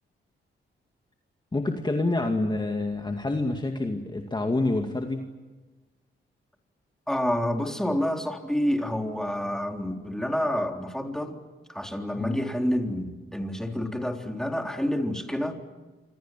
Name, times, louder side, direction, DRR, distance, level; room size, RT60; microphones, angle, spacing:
voice 1, 1.5-5.2 12.2-12.4, left 2 dB, 20° left, 4 dB, 2.3 m, -27 dB
voice 2, 7.1-11.4 11.7-15.6, equal, ahead, 4 dB, 3.7 m, -28 dB
28.0 x 25.5 x 7.6 m, 1.2 s
wide cardioid pair, 115°, 21 cm